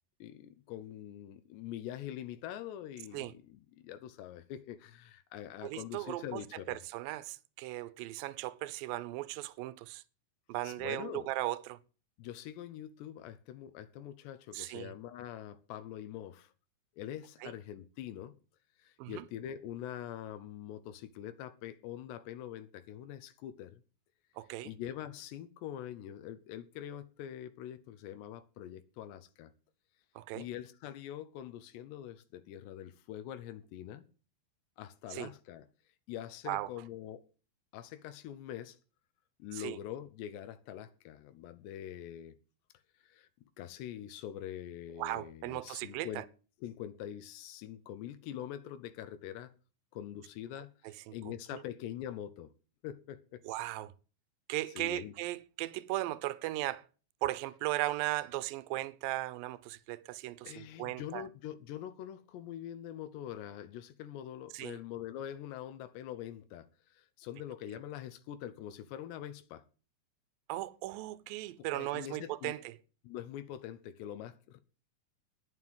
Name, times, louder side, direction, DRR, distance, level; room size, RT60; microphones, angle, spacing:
voice 1, 0.2-6.8 10.6-11.3 12.2-16.5 17.0-18.3 18.8-23.8 24.6-29.5 30.4-34.1 34.8-35.7 36.1-37.3 37.7-38.8 39.4-42.4 43.0-43.3 43.6-46.2 46.6-49.5 49.9-52.5 52.8-53.4 54.8-55.1 60.4-69.6 71.7-72.5 73.0-74.6, left 11 dB, 90° left, 3.1 m, -44 dB
voice 2, 5.6-6.4 6.7-10.0 10.5-11.8 14.5-14.9 17.4-17.5 19.0-19.3 24.4-24.7 30.2-30.5 35.1-35.3 36.5-36.7 39.5-39.8 45.0-46.2 50.8-51.1 51.5-51.6 53.4-53.9 54.5-56.8 57.2-61.3 64.5-64.8 70.5-72.7, right 17 dB, 75° right, 2.2 m, -37 dB
11.0 x 9.7 x 7.7 m
omnidirectional pair, 4.8 m